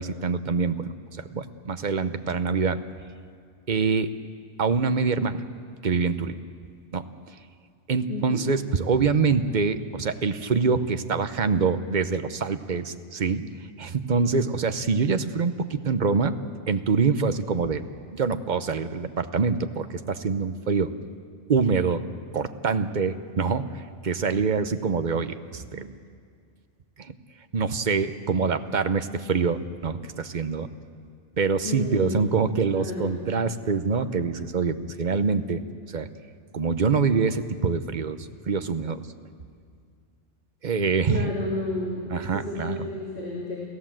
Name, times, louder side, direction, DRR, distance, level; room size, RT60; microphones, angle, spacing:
voice 1, 0.0-2.8 3.7-4.1 4.6-5.4 5.8-6.4 6.9-7.0 7.9-13.4 13.8-16.4 16.7-17.8 18.1-20.9 21.5-22.0 22.3-26.0 27.0-27.2 27.5-30.7 31.4-35.6 35.9-36.1 36.5-39.0 40.6-41.2 42.1-42.9, right 5 dB, 40° right, 10 dB, 0.9 m, -25 dB
voice 2, 31.6-32.2 32.7-33.2 41.1-43.6, left 2 dB, 45° left, -4 dB, 3.2 m, -31 dB
29.0 x 15.5 x 7.5 m, 2.2 s
omnidirectional pair, 1.3 m